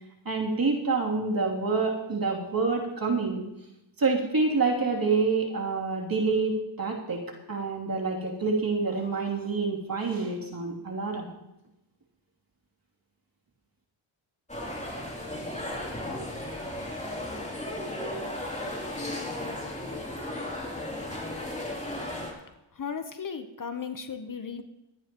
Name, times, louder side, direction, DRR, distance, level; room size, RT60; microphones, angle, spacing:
voice 1, 0.2-3.4 4.0-7.2 7.5-11.3, right 4 dB, 45° right, -1 dB, 2.9 m, -27 dB
sound 1, 14.5-22.3, left 1 dB, 15° left, 3.2 m, -35 dB
voice 2, 22.7-24.6, left 6 dB, 40° left, 8 dB, 0.9 m, -36 dB
24.0 x 9.6 x 3.0 m, 0.91 s
cardioid pair, 80°, 48 cm